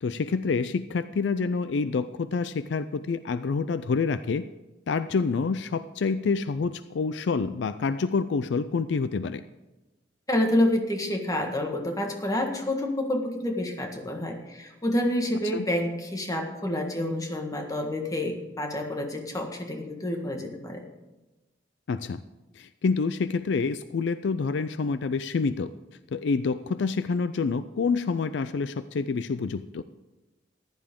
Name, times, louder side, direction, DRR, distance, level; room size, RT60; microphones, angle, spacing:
voice 1, 0.0-4.4 4.9-9.4 15.5-15.7 21.9-22.2 22.6-25.7 26.1-29.8, left 4 dB, 70° left, 13 dB, 0.4 m, -27 dB
voice 2, 10.3-20.8, left 1 dB, 20° left, 3 dB, 1.5 m, -28 dB
14.5 x 10.5 x 3.7 m, 1.1 s
head